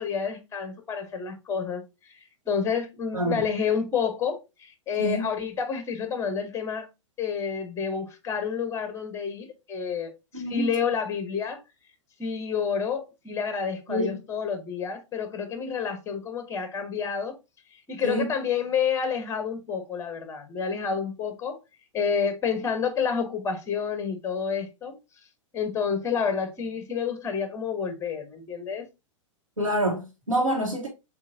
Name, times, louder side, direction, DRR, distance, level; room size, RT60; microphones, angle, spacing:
voice 1, 0.0-2.2 2.5-6.9 7.2-11.6 12.2-17.4 17.9-21.6 21.9-25.0 25.5-28.9, left 6 dB, 15° left, 1.0 m, -29 dB
voice 2, 10.3-10.7 13.9-14.1 18.0-18.3 29.6-30.9, right 1 dB, 90° right, 1.3 m, -27 dB
7.1 x 2.5 x 2.6 m
figure-of-eight pair, 105°, 17 cm